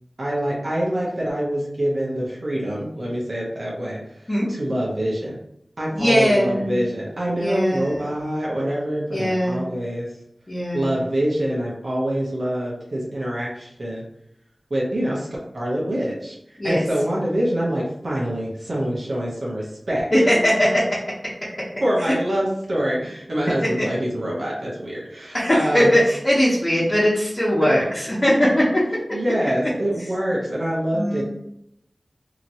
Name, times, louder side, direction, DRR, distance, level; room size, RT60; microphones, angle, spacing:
voice 1, 0.2-4.0 4.5-5.4 5.8-10.1 10.7-14.1 14.7-15.3 15.5-16.3 16.6-20.4 21.8-26.0 29.1-31.2, right 1 dB, 70° right, -5 dB, 0.9 m, -25 dB
voice 2, 5.9-6.8 7.3-8.0 9.1-9.6 10.5-11.0 16.6-16.8 20.1-20.8 25.3-28.6 30.9-31.2, equal, 40° left, -9 dB, 1.0 m, -20 dB
2.9 x 2.8 x 2.6 m, 0.77 s
wide cardioid pair, 55°, 0 cm